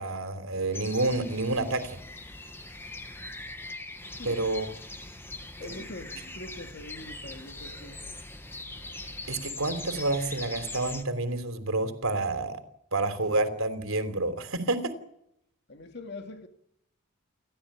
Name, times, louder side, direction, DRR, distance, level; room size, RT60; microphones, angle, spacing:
voice 1, 0.0-2.0 4.2-4.7 5.6-5.8 9.3-12.6 12.9-14.9, right 2 dB, 75° right, 3.3 m, -29 dB
sound 1, 0.7-11.0, left 2 dB, 10° left, 1.3 m, -41 dB
voice 2, 5.6-8.0 15.7-16.5, left 2 dB, 50° left, 2.4 m, -43 dB
29.5 x 13.5 x 8.8 m
head